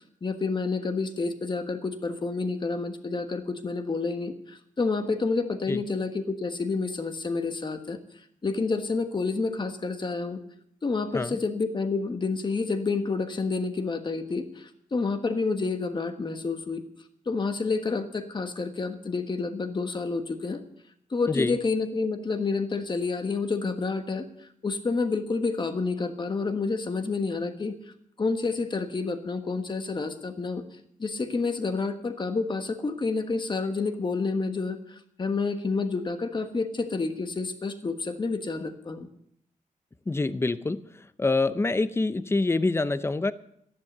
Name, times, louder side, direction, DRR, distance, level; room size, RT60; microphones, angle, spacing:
voice 1, 0.2-8.0 8.4-10.4 10.8-16.8 17.2-20.6 21.1-24.3 24.6-27.7 28.2-30.6 31.0-39.1, left 4 dB, 35° left, 7 dB, 1.4 m, -29 dB
voice 2, 21.3-21.6 40.1-43.3, left 3 dB, 20° left, 14 dB, 0.6 m, -26 dB
13.0 x 11.0 x 6.7 m, 0.70 s
wide cardioid pair, 135°, 14 cm